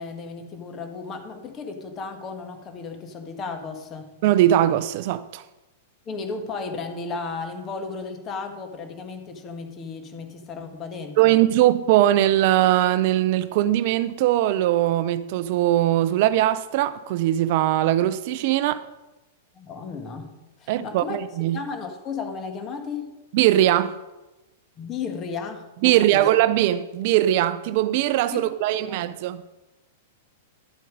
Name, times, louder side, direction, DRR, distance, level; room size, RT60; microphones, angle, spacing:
voice 1, 0.0-4.1 6.1-11.4 19.5-20.3 20.6-21.2 21.5-23.1 24.8-26.3 28.3-29.0, left 4 dB, 30° left, 1.9 m, -34 dB
voice 2, 4.2-5.4 11.2-18.8 20.7-21.6 23.3-24.0 25.8-29.4, right 13 dB, 55° right, 0.5 m, -20 dB
11.5 x 7.6 x 5.2 m
hypercardioid pair, 105°, 0 cm